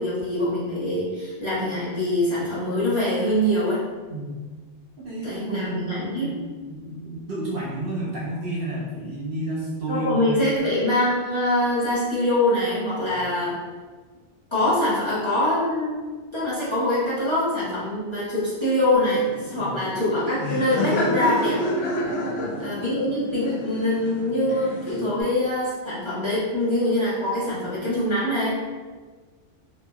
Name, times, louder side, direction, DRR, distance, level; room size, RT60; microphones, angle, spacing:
voice 1, 0.0-3.8 5.2-6.3 9.9-13.6 14.5-16.0 16.3-21.6 22.6-28.5, left 1 dB, 30° left, -11 dB, 0.7 m, -24 dB
voice 2, 5.0-5.9 6.2-10.2 13.1-13.2 19.6-19.7 22.1-22.6, right 1 dB, 60° right, -5 dB, 0.7 m, -31 dB
Laughter, 18.9-25.2, left 1 dB, 65° left, 0.8 m, -29 dB
2.9 x 2.6 x 2.2 m, 1.4 s
omnidirectional pair, 1.2 m